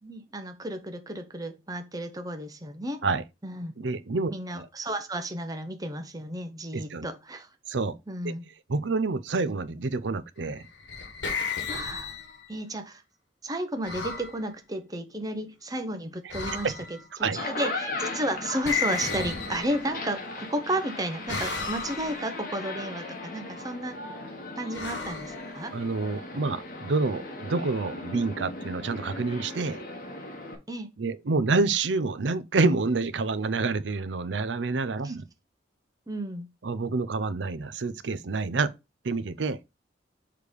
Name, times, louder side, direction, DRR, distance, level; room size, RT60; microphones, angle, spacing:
voice 1, 0.0-3.0 3.4-3.8 4.3-7.5 8.1-8.5 11.7-12.2 12.5-13.0 13.4-24.0 24.6-25.7 30.7-30.9 35.0-35.1 36.1-36.5, right 1 dB, 20° right, 0.9 m, -33 dB
voice 2, 3.8-4.7 6.7-7.1 7.7-8.0 8.2-8.3 8.7-10.6 16.5-16.8 17.2-17.4 25.7-29.8 31.0-35.2 36.6-38.7 39.0-39.6, right 3 dB, 80° right, 0.6 m, -28 dB
sound 1, 10.6-12.6 13.8-14.3 16.3-17.0 18.6-20.1 21.3-22.3 24.7-25.9, left 5 dB, 75° left, 1.4 m, -34 dB
sound 2, 17.2-30.6, left 2 dB, 50° left, 1.4 m, -38 dB
6.6 x 3.3 x 5.2 m
head